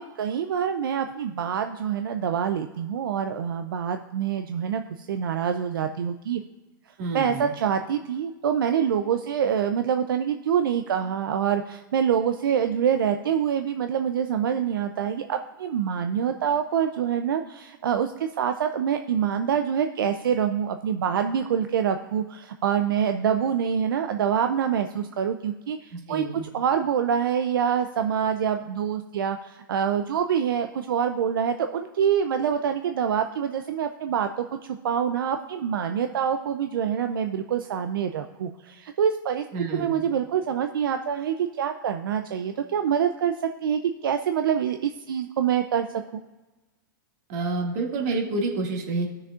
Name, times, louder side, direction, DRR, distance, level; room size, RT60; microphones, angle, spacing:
voice 1, 0.0-6.4 7.1-26.2 26.5-34.3 34.6-39.4 39.7-43.3 43.6-45.9 46.1-46.2, right 8 dB, 80° right, 7 dB, 0.5 m, -26 dB
voice 2, 7.0-7.5 25.9-26.4 39.5-40.0 47.3-49.1, right 3 dB, 50° right, 1 dB, 2.0 m, -28 dB
16.0 x 6.4 x 2.4 m, 1.1 s
hypercardioid pair, 130°, 11 cm